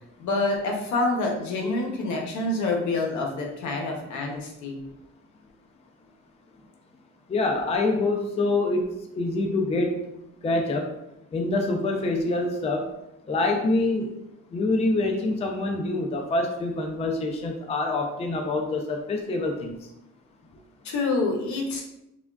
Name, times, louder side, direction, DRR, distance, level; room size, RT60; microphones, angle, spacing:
voice 1, 0.2-4.8 20.8-21.8, left 2 dB, 70° left, 0 dB, 0.7 m, -27 dB
voice 2, 7.3-10.1 10.4-10.9 11.3-12.9 13.3-14.1 14.5-19.8, left 2 dB, 20° left, 3 dB, 0.4 m, -26 dB
3.4 x 2.2 x 2.3 m, 0.87 s
cardioid pair, 90°, 30 cm